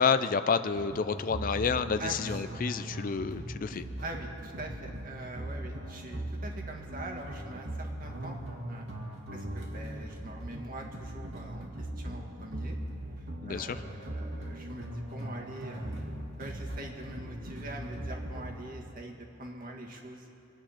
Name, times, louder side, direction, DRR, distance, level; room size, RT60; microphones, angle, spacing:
voice 1, 0.0-3.8 13.4-13.8, left 5 dB, 40° left, 12 dB, 0.4 m, -29 dB
sound 1, 0.7-18.6, right 1 dB, 75° right, 2.3 m, -39 dB
voice 2, 2.0-2.4 4.0-8.4 8.7-8.9 9.3-12.8 13.2-16.0 16.4-20.3, right 2 dB, 40° right, 1 dB, 1.8 m, -43 dB
25.5 x 8.9 x 5.8 m, 2.9 s
head